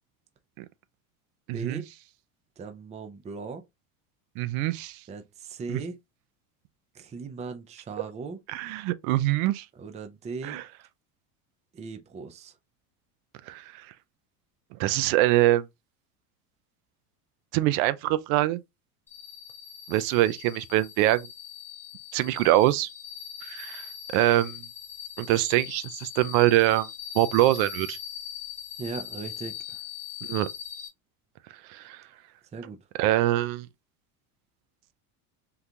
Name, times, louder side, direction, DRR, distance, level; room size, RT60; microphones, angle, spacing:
voice 1, 1.5-1.8 4.4-5.0 5.7-5.8 8.5-9.6 10.4-10.6 13.5-13.8 14.8-15.6 17.5-18.6 19.9-21.3 22.1-22.9 23.4-23.8 24.1-24.6 25.2-26.9 27.1-28.0 30.3-30.5 31.7-32.0 33.0-33.7, right 15 dB, 65° right, 0.5 m, -24 dB
voice 2, 2.6-3.6 5.1-6.0 6.9-8.4 9.8-10.6 11.7-12.6 28.8-29.8 32.5-32.8, right 4 dB, 15° right, 0.4 m, -38 dB
sound 1, 19.1-30.9, left 8 dB, 5° left, 1.2 m, -41 dB
3.7 x 2.4 x 2.8 m
supercardioid pair, 110°, 43 cm